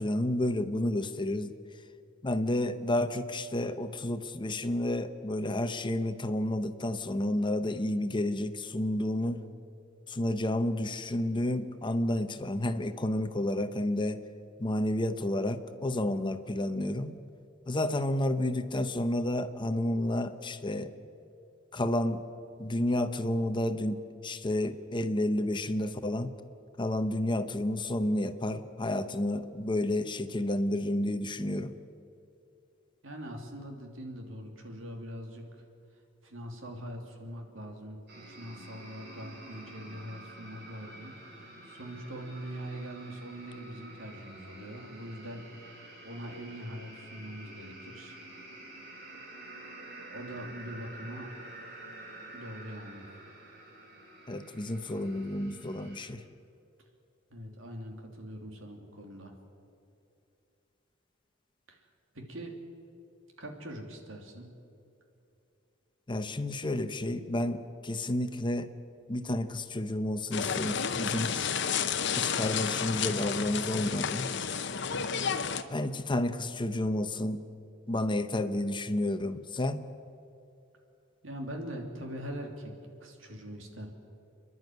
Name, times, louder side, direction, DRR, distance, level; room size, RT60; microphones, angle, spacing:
voice 1, 0.0-1.5 2.2-9.4 10.1-14.2 14.6-17.2 17.7-20.9 21.7-22.2 22.6-26.3 26.8-31.7 54.3-56.2 66.1-68.7 69.1-71.5 72.1-74.3 75.7-77.4 77.9-79.8, left 1 dB, 25° left, 10 dB, 0.8 m, -30 dB
voice 2, 33.0-35.6 36.2-45.8 46.0-48.2 50.1-51.3 52.3-53.1 57.3-59.3 61.7-61.9 62.1-62.5 63.4-64.5 81.2-82.7 83.0-83.9, equal, 85° right, 3 dB, 3.0 m, -42 dB
sound 1, 38.1-56.1, right 1 dB, 60° right, 4.3 m, -49 dB
sound 2, 70.3-75.6, left 7 dB, 65° left, 0.9 m, -31 dB
29.0 x 11.0 x 9.4 m, 2.7 s
head